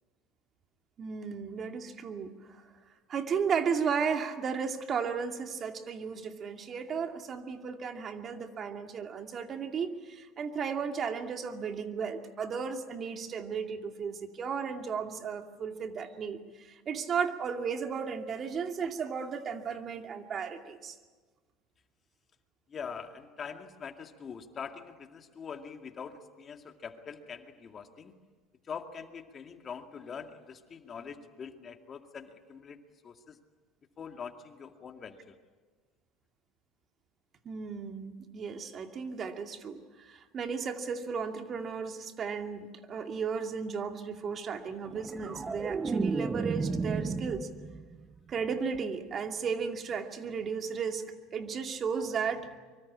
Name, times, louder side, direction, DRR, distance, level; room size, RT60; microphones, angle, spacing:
voice 1, 1.0-2.6 3.1-21.0 37.4-47.5 48.3-51.1 51.3-52.5, right 6 dB, 40° right, 5 dB, 2.4 m, -34 dB
voice 2, 22.7-28.1 28.7-33.4 34.0-35.3, left 6 dB, 35° left, 6 dB, 2.3 m, -44 dB
sound 1, 44.8-48.0 48.4-48.8, right 4 dB, 25° right, 1.1 m, -33 dB
24.5 x 24.0 x 8.7 m, 1.4 s
supercardioid pair, 90°, 0 cm